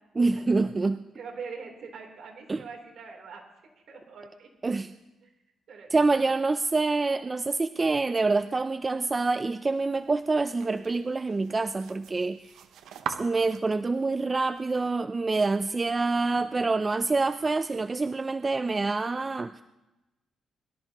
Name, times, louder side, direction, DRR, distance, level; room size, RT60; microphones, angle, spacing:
voice 1, 0.2-1.0 2.5-2.6 4.6-4.9 5.9-12.5 13.2-19.5, right 3 dB, 25° right, 11 dB, 0.4 m, -26 dB
voice 2, 1.1-3.4 3.9-4.5 5.2-5.3 5.7-6.3, right 5 dB, 60° right, 0 dB, 3.4 m, -43 dB
sound 1, 9.8-14.9, right 8 dB, 85° right, 0.8 m, -43 dB
22.0 x 13.0 x 3.0 m, 1.0 s
cardioid pair, 105°, 0 cm